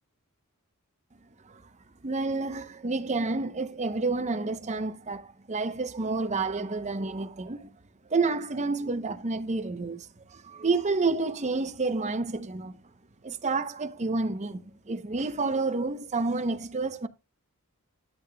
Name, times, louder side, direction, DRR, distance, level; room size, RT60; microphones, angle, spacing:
voice 1, 2.0-7.7 8.1-12.7 13.2-17.1, right 3 dB, 30° right, 0.7 m, -29 dB
12.0 x 8.4 x 2.2 m
head